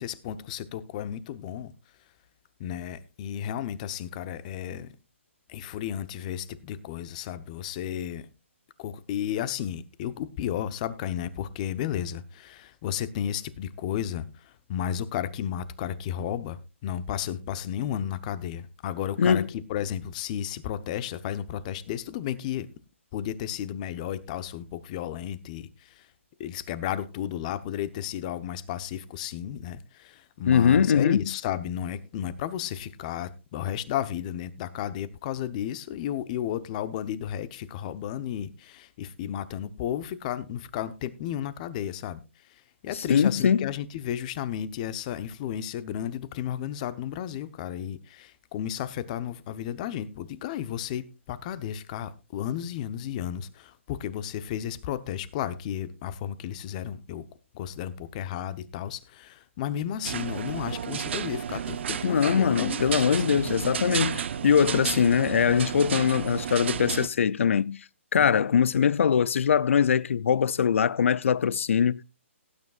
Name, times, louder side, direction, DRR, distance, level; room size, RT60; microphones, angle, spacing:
voice 1, 0.0-1.7 2.6-4.9 5.5-8.3 8.8-14.3 14.7-22.7 23.1-25.7 26.4-42.2 42.8-57.2 57.5-63.2 68.2-68.3, left 10 dB, 35° left, 0.9 m, -33 dB
voice 2, 19.2-19.5 30.5-31.3 42.9-43.7 62.0-67.8 68.1-72.0, left 7 dB, 70° left, 0.4 m, -22 dB
sound 1, 60.0-67.1, right 8 dB, 60° right, 0.7 m, -32 dB
18.0 x 9.5 x 2.4 m
hypercardioid pair, 150°, 7 cm